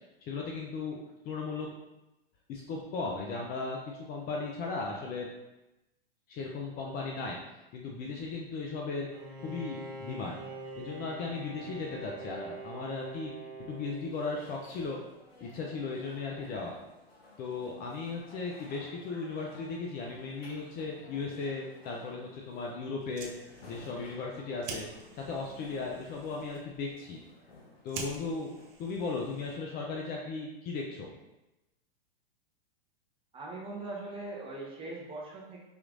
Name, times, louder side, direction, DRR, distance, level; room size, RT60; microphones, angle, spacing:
voice 1, 0.2-1.7 2.5-5.3 6.3-7.4 7.7-9.1 9.4-10.4 10.8-13.3 13.7-15.0 15.4-16.7 17.4-23.3 23.6-24.9 25.1-27.2 27.8-28.5 28.8-31.1, left 4 dB, 30° left, -1 dB, 0.5 m, -36 dB
Bowed string instrument, 9.1-14.7, right 2 dB, 50° right, 1.2 m, -45 dB
sound 1, 12.6-29.7, left 2 dB, 80° left, 1.0 m, -56 dB
Fire, 22.9-29.8, right 5 dB, 35° right, 0.7 m, -47 dB
voice 2, 33.3-35.6, right 2 dB, 20° right, -4 dB, 1.1 m, -40 dB
5.0 x 3.0 x 2.5 m, 0.97 s
hypercardioid pair, 110°, 30 cm